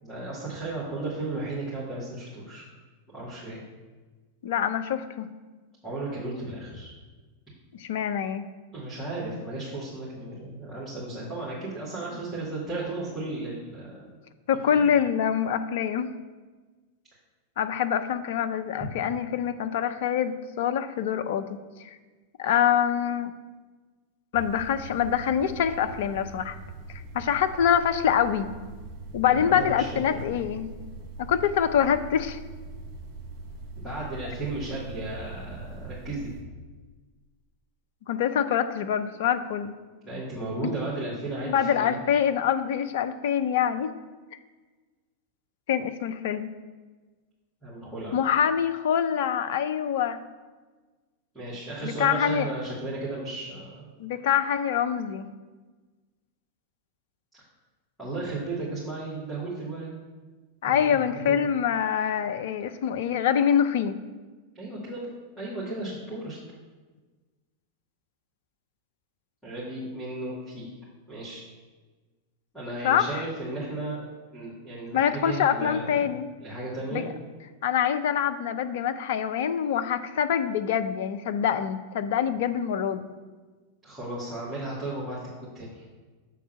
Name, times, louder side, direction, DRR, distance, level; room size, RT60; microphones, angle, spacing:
voice 1, 0.0-2.7 3.1-3.6 5.8-6.9 8.7-14.0 14.7-14.9 18.8-18.9 29.2-30.4 33.8-36.3 40.0-42.0 47.6-48.2 51.3-53.9 58.0-60.0 60.6-61.4 64.5-65.1 65.4-66.4 69.4-70.7 71.1-71.4 72.5-74.0 74.3-76.1 76.4-77.1 83.8-86.0, right 2 dB, 5° right, -11 dB, 2.0 m, -35 dB
voice 2, 4.4-5.3 7.8-8.5 14.5-16.1 17.6-21.9 22.4-23.3 24.3-26.6 26.9-28.5 29.1-30.7 31.3-32.4 38.1-39.8 40.6-40.7 41.4-43.9 45.7-46.5 48.1-50.2 51.8-52.5 54.0-55.3 60.6-64.0 72.8-73.2 74.9-76.3 76.9-77.1 77.6-83.1, left 8 dB, 55° left, 9 dB, 0.4 m, -25 dB
sound 1, 24.3-36.4, right 3 dB, 40° right, 1.2 m, -42 dB
7.2 x 3.5 x 5.8 m, 1.3 s
figure-of-eight pair, 90°, 0 cm